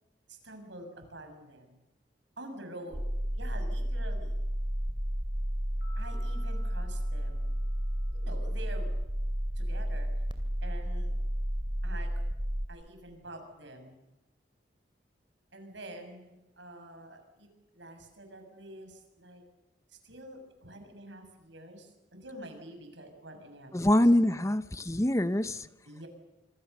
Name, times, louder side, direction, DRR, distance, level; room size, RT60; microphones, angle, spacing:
voice 1, 0.3-1.8 2.4-3.0 3.3-4.3 6.0-7.5 8.0-8.9 9.6-10.3 10.6-11.1 11.8-12.2 12.7-14.0 15.5-17.5 17.7-19.4 19.9-24.3 25.9-26.1, right 1 dB, 80° right, 6.8 m, -47 dB
sound 1, 2.9-12.7, equal, 25° right, 2.7 m, -32 dB
sound 2, 5.8-8.3, left 1 dB, 65° left, 5.5 m, -56 dB
voice 2, 23.7-25.7, left 1 dB, 15° left, 0.8 m, -25 dB
26.0 x 25.5 x 6.8 m
head